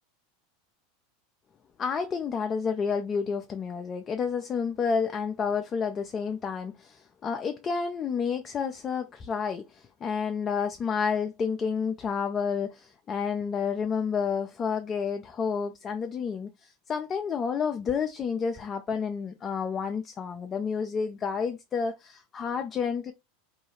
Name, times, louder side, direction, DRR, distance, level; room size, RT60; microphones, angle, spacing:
voice 1, 1.8-23.1, left 6 dB, 30° left, 0.3 m, -30 dB
2.5 x 2.2 x 3.0 m
hypercardioid pair, 85°, 0 cm